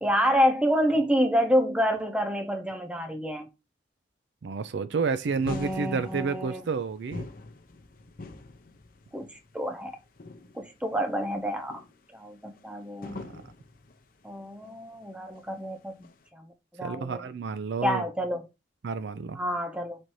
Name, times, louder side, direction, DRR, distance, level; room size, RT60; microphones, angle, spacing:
voice 1, 0.0-3.5 5.5-6.6 9.1-9.3 9.5-9.9 10.5-11.8 12.1-13.3 14.2-16.1 16.4-16.5 16.8-17.3 17.8-18.5 19.4-20.0, equal, 5° right, 0.7 m, -28 dB
voice 2, 4.4-7.3 13.3-13.4 16.8-18.1 18.8-19.4, right 5 dB, 65° right, 0.4 m, -30 dB
sound 1, 5.1-16.3, left 2 dB, 50° left, 0.6 m, -45 dB
4.3 x 2.6 x 4.6 m
head